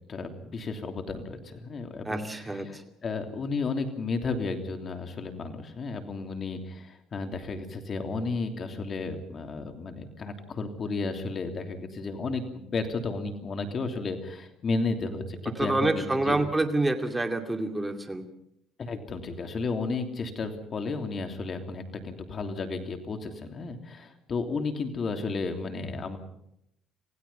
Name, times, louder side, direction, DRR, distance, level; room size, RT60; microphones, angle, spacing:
voice 1, 0.1-16.5 18.8-26.2, left 3 dB, 35° left, 5 dB, 3.1 m, -33 dB
voice 2, 2.0-2.8 15.6-18.3, right 2 dB, 10° right, 5 dB, 2.4 m, -27 dB
28.0 x 16.5 x 5.7 m, 0.75 s
cardioid pair, 120°, 0 cm